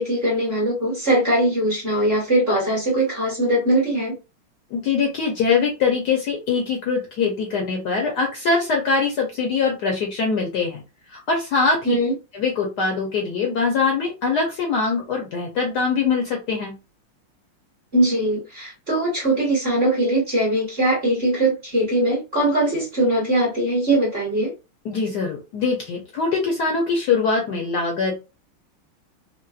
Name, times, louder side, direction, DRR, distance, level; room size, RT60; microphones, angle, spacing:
voice 1, 0.0-4.1 11.8-12.1 17.9-24.5, right 1 dB, 35° right, -3 dB, 1.1 m, -21 dB
voice 2, 4.7-10.8 11.1-11.9 12.3-16.7 24.8-28.3, left 4 dB, 70° left, 0 dB, 1.0 m, -23 dB
4.0 x 2.1 x 2.3 m, 0.29 s
omnidirectional pair, 2.3 m